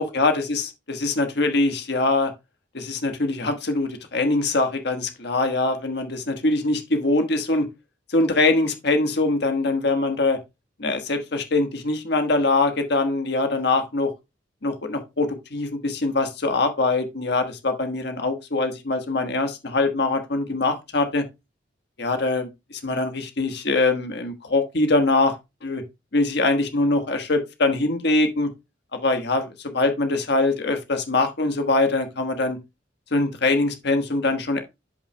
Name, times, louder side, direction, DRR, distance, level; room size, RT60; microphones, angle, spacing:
voice 1, 0.0-2.3 2.7-7.7 8.1-10.4 10.8-14.1 14.6-21.2 22.0-25.3 25.6-25.8 26.1-28.5 29.0-32.6 33.1-34.6, left 2 dB, 65° left, 1.4 m, -23 dB
12.5 x 5.8 x 2.2 m
head